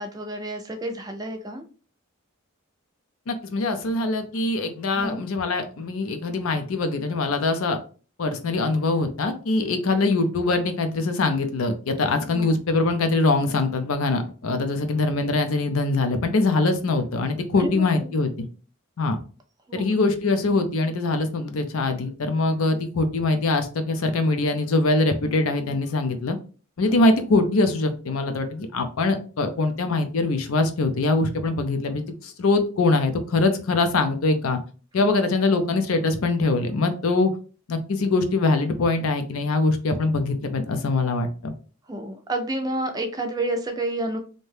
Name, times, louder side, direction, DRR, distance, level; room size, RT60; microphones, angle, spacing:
voice 1, 0.0-1.6 4.9-5.2 12.3-12.6 17.5-18.1 19.7-19.9 35.0-35.2 41.9-44.2, right 1 dB, 15° right, 5 dB, 0.3 m, -30 dB
voice 2, 3.3-7.8 8.2-18.5 19.0-19.2 19.7-26.4 26.8-34.6 34.9-37.3 37.7-41.5, left 3 dB, 75° left, 8 dB, 0.5 m, -23 dB
2.7 x 2.2 x 3.2 m, 0.37 s
head